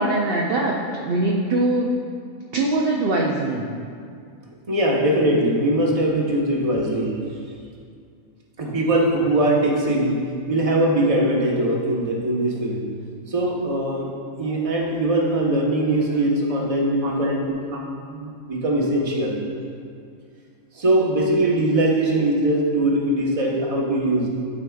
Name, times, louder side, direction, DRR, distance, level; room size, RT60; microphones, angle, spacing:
voice 1, 0.0-2.0 2.5-3.7 17.0-17.3 17.7-17.8, right 2 dB, 60° right, -1 dB, 0.6 m, -22 dB
voice 2, 4.7-7.2 8.6-10.2 10.5-12.8 13.3-14.1 14.4-19.4 20.7-24.3, right 1 dB, 30° right, -2 dB, 0.8 m, -21 dB
11.5 x 4.8 x 2.3 m, 2.3 s
omnidirectional pair, 1.4 m